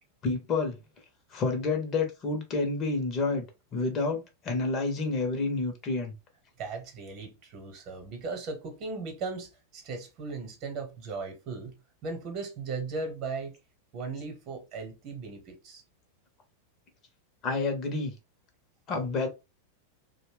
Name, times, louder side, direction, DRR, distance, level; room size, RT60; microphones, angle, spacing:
voice 1, 0.2-0.8 1.3-3.4 3.7-6.1 17.4-18.1 18.9-19.3, left 3 dB, 30° left, 0.7 m, -29 dB
voice 2, 6.6-11.7 12.0-13.6 13.9-15.8, right 4 dB, 40° right, 0.9 m, -37 dB
2.6 x 2.1 x 3.3 m
figure-of-eight pair, 90°, 0 cm